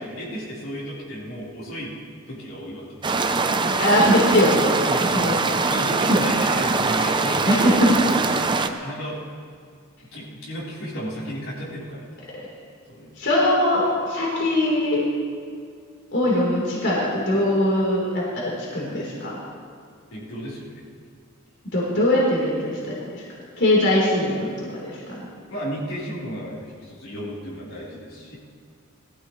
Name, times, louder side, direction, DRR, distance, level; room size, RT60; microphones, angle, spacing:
voice 1, 0.0-1.9 2.3-3.2 4.9-5.4 5.7-9.2 10.1-12.1 12.9-13.1 20.1-20.8 25.5-28.4, equal, 75° left, -7 dB, 4.2 m, -33 dB
sound 1, 3.0-8.7, right 4 dB, 20° right, 0.6 m, -22 dB
voice 2, 3.8-5.3 7.0-7.1 7.5-8.0 13.2-15.0 16.1-19.4 21.7-23.2 23.6-25.3, left 1 dB, 55° left, -5 dB, 3.9 m, -21 dB
22.0 x 15.0 x 3.2 m, 2.1 s
head